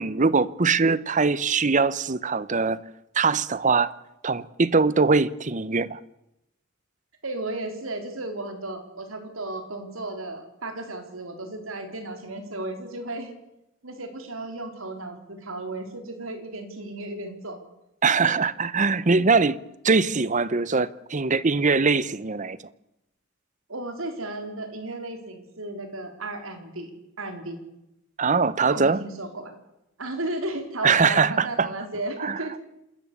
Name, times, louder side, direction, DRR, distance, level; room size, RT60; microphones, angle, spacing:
voice 1, 0.0-2.8 3.1-3.9 4.2-6.0 18.0-19.6 19.8-22.6 28.2-29.0 30.8-31.7 32.2-32.4, right 4 dB, 35° right, 0.9 m, -22 dB
voice 2, 7.2-13.3 13.8-17.6 18.2-18.3 23.7-26.9 27.2-27.6 28.7-29.5 30.0-32.6, right 2 dB, 85° right, 4.2 m, -34 dB
27.5 x 14.0 x 8.4 m
head